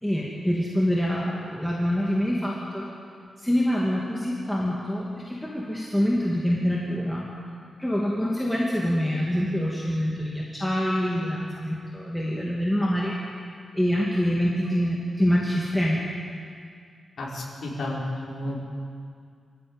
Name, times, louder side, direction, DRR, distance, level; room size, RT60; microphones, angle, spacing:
voice 1, 0.0-2.9 3.4-7.3 7.8-13.2 13.7-16.0, equal, 5° left, -5 dB, 2.4 m, -25 dB
voice 2, 17.2-18.0 18.3-18.6, left 1 dB, 65° left, -5 dB, 5.5 m, -32 dB
25.0 x 15.0 x 9.0 m, 2.2 s
wide cardioid pair, 155°, 0 cm